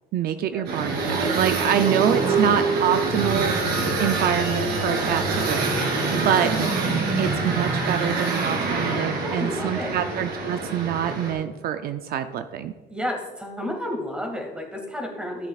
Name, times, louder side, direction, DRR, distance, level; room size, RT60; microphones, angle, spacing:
voice 1, 0.1-3.5 4.0-5.7 6.2-6.5 7.2-12.7, right 10 dB, 65° right, 9 dB, 0.5 m, -26 dB
sound 1, 0.6-11.3, right 3 dB, 80° right, 2.8 m, -25 dB
voice 2, 9.0-10.0 12.9-15.5, left 1 dB, 5° right, 1 dB, 2.0 m, -31 dB
14.5 x 7.4 x 2.4 m, 1.3 s
cardioid pair, 110°, 17 cm